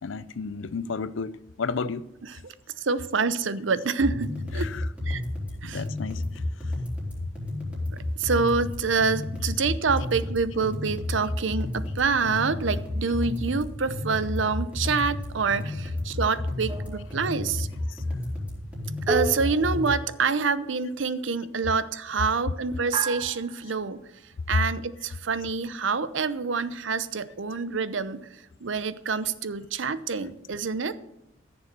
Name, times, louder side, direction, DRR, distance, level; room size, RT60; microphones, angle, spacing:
voice 1, 0.0-2.1 4.5-4.9 5.6-6.2 17.9-18.0 24.5-24.7, left 4 dB, 75° left, 0.6 m, -31 dB
voice 2, 2.3-4.7 5.0-5.2 5.6-5.8 8.2-17.7 19.1-24.0 24.5-28.2 28.6-31.0, right 5 dB, 70° right, 0.7 m, -27 dB
sound 1, 4.0-20.0, left 1 dB, 5° right, 3.8 m, -31 dB
sound 2, 16.7-17.3 19.1-20.4 22.9-23.8, right 2 dB, 25° right, 0.6 m, -32 dB
14.0 x 6.9 x 6.8 m
head